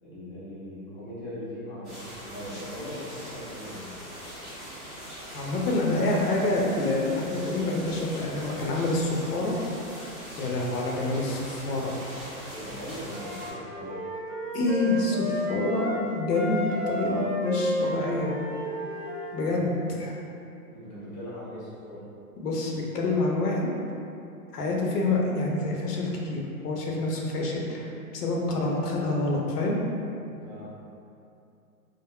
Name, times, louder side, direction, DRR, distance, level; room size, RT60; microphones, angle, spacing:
voice 1, 0.0-3.9 12.4-14.0 19.4-19.9 20.7-22.0 30.4-30.7, equal, 20° left, -11 dB, 0.4 m, -40 dB
sound 1, 1.8-13.5, equal, ahead, 0.8 m, -42 dB
voice 2, 5.3-9.6 10.4-11.9 14.5-18.3 19.3-20.1 22.4-23.7 24.5-29.8, left 2 dB, 85° left, -1 dB, 0.7 m, -27 dB
Wind instrument woodwind instrument, 13.1-16.0 16.3-19.5, left 1 dB, 75° right, 0.8 m, -32 dB
3.5 x 2.0 x 2.2 m, 2.6 s
hypercardioid pair, 145°, 46 cm